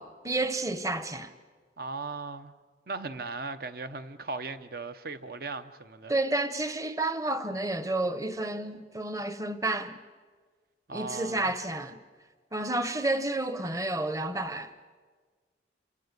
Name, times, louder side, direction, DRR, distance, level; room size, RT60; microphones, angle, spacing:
voice 1, 0.0-1.3 6.1-10.0 10.9-12.0 12.5-14.7, right 2 dB, 15° right, 1.0 m, -30 dB
voice 2, 1.8-2.5 2.9-6.1 10.9-11.5, right 3 dB, 50° right, 0.9 m, -37 dB
28.0 x 25.5 x 6.7 m
head